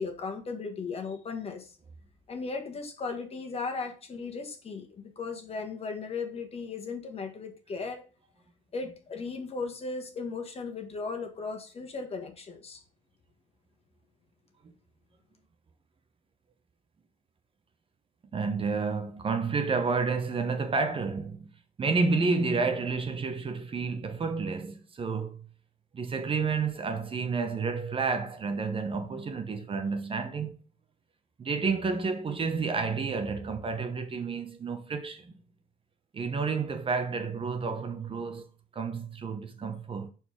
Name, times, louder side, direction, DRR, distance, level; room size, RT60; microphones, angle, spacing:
voice 1, 0.0-1.8 2.3-8.1 8.7-12.8, left 4 dB, 35° left, 1.5 m, -36 dB
voice 2, 18.3-21.5 21.8-25.5 25.9-30.5 31.4-35.3 36.1-38.5 38.7-40.1, right 4 dB, 30° right, 1.0 m, -30 dB
5.4 x 4.5 x 4.7 m
cardioid pair, 110°, 17 cm